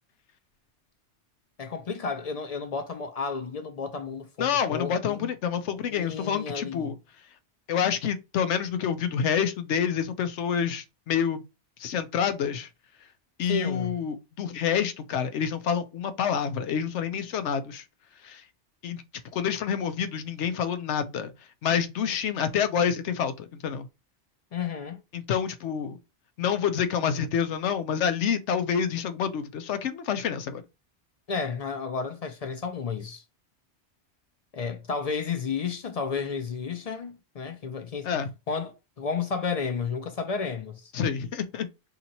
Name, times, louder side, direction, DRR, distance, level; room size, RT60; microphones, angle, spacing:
voice 1, 1.6-5.3 5.9-6.9 13.5-13.9 24.5-25.0 31.3-33.2 34.5-38.1 38.5-40.9, left 5 dB, 55° left, 0.4 m, -32 dB
voice 2, 4.4-7.0 7.7-11.4 11.8-12.7 13.4-17.8 18.2-18.4 18.8-19.0 19.3-21.3 21.6-23.9 25.1-26.0 26.4-30.6 38.0-38.3 40.9-41.7, left 7 dB, 90° left, 0.9 m, -28 dB
2.9 x 2.7 x 3.9 m
omnidirectional pair, 1.2 m